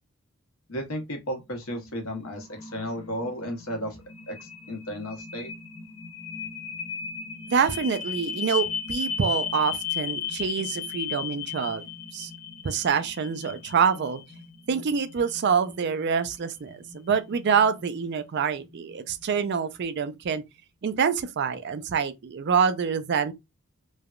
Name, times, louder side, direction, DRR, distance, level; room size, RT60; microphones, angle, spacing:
voice 1, 0.7-4.0 4.3-5.5, equal, 75° left, 1.0 m, -34 dB
sound 1, 1.7-19.8, left 7 dB, 25° left, 0.7 m, -37 dB
voice 2, 7.5-11.8 12.1-12.3 12.6-14.2 14.7-20.4 20.8-23.3, right 6 dB, 50° right, 0.4 m, -26 dB
3.2 x 2.2 x 2.4 m
head